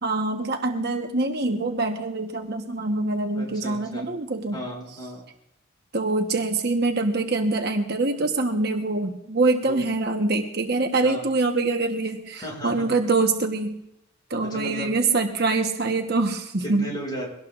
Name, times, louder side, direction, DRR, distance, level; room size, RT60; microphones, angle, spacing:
voice 1, 0.0-4.6 5.9-13.7 14.3-16.9, right 3 dB, 50° right, 4 dB, 1.2 m, -24 dB
voice 2, 3.4-4.1 4.5-5.2 9.6-9.8 11.0-11.2 12.3-12.9 14.4-14.9 16.6-17.3, equal, 20° left, -2 dB, 6.9 m, -35 dB
23.0 x 18.0 x 2.5 m, 0.83 s
head